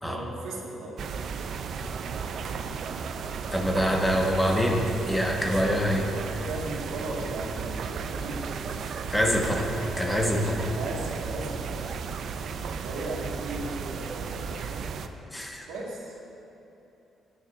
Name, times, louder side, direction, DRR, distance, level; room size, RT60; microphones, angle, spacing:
voice 1, 0.0-1.0 6.3-8.5 10.7-11.9 12.8-15.0 15.7-16.1, right 2 dB, 90° right, -4 dB, 1.9 m, -37 dB
sound 1, 1.0-15.1, right 5 dB, 65° right, 0.5 m, -34 dB
voice 2, 3.5-6.1 9.1-9.7 10.0-10.6 15.3-15.7, equal, 10° left, 0 dB, 1.5 m, -25 dB
16.0 x 10.0 x 2.6 m, 2.9 s
cardioid pair, 75°, 0 cm